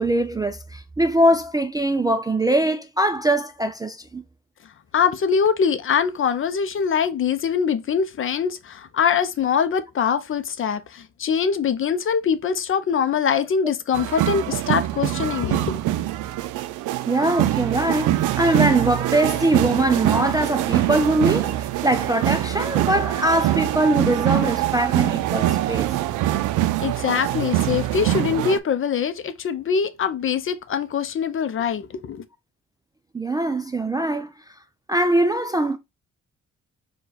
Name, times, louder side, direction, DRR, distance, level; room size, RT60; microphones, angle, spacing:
voice 1, 0.0-4.2 17.1-25.9 33.1-34.3 34.9-35.8, right 1 dB, 15° right, 0.3 m, -22 dB
voice 2, 4.9-15.8 26.8-32.2, left 7 dB, 45° left, 0.6 m, -23 dB
sound 1, 13.9-28.6, right 14 dB, 85° right, 0.4 m, -24 dB
4.5 x 2.3 x 3.9 m
cardioid pair, 90°, 30 cm